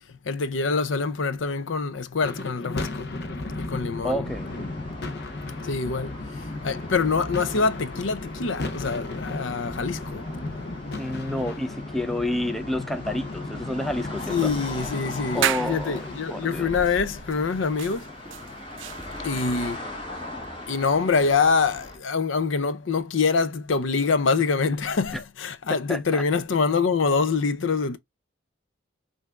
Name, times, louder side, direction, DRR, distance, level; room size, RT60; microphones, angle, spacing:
voice 1, 0.2-3.1 3.6-4.3 5.6-6.2 6.6-10.2 14.3-18.1 19.2-19.8 20.7-28.0, left 4 dB, 70° left, 0.5 m, -25 dB
sound 1, 2.2-18.5, left 2 dB, 55° left, 0.9 m, -35 dB
voice 2, 4.0-4.5 6.0-6.1 11.0-14.5 15.3-16.7 25.9-26.2, left 1 dB, ahead, 0.5 m, -29 dB
sound 2, 4.2-22.0, left 1 dB, 25° left, 1.3 m, -40 dB
sound 3, 14.3-16.0 16.8-17.0 17.3-19.5, right 11 dB, 65° right, 0.4 m, -32 dB
5.6 x 2.7 x 2.2 m
head